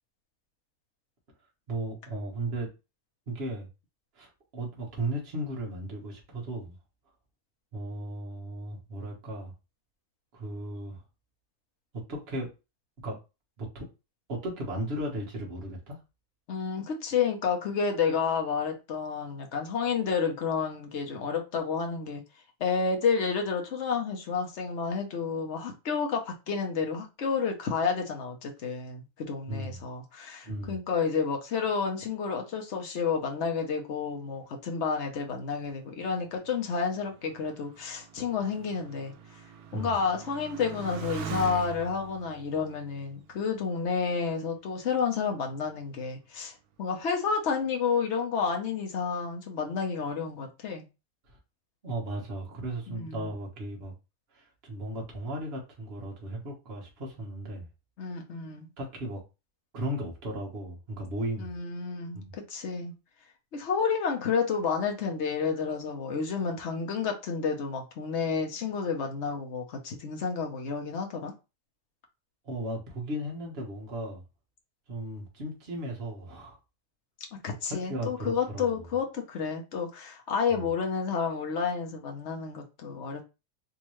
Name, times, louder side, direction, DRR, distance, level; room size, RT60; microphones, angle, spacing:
voice 1, 1.7-2.7 3.3-3.7 4.2-6.8 7.7-9.5 10.3-11.0 12.1-12.5 13.0-13.2 13.6-13.9 14.3-16.0 29.5-29.8 30.4-30.8 39.7-39.9 51.3-51.4 51.8-53.9 54.3-57.7 58.8-59.2 59.7-61.5 62.1-62.2 72.4-74.2 74.9-76.6 77.7-78.9 80.5-80.7, right 1 dB, 40° right, 1.3 m, -36 dB
voice 2, 16.5-22.2 22.6-39.4 39.7-50.8 52.9-53.3 58.0-58.7 61.4-62.9 63.5-71.3 77.3-83.2, left 5 dB, 55° left, 1.0 m, -30 dB
Motorcycle, 35.4-44.4 45.1-45.7, right 7 dB, 75° right, 1.0 m, -43 dB
3.6 x 2.7 x 3.0 m
omnidirectional pair, 1.7 m